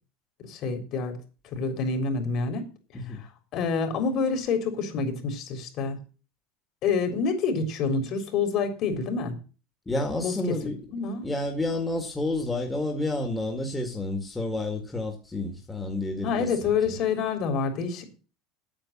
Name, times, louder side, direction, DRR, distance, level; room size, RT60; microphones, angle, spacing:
voice 1, 0.5-1.1 1.5-2.7 3.1-6.0 6.8-9.4 10.2-10.3 10.9-11.3 16.2-18.1, left 5 dB, 50° left, 3.7 m, -27 dB
voice 2, 9.9-10.8 11.2-16.6 16.9-17.0, left 2 dB, 10° left, 2.1 m, -30 dB
9.0 x 7.7 x 7.4 m
supercardioid pair, 125°, 0 cm